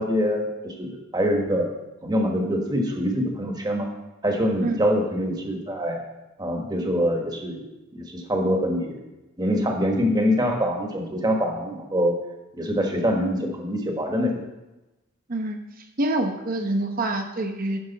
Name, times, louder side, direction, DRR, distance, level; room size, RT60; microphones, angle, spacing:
voice 1, 0.0-1.7 2.0-3.9 4.2-6.0 6.4-7.6 7.9-9.0 9.4-12.1 12.5-14.4, equal, 20° right, 2 dB, 1.3 m, -24 dB
voice 2, 16.0-17.8, right 2 dB, 45° right, 5 dB, 0.9 m, -26 dB
10.5 x 6.2 x 4.1 m, 1.0 s
head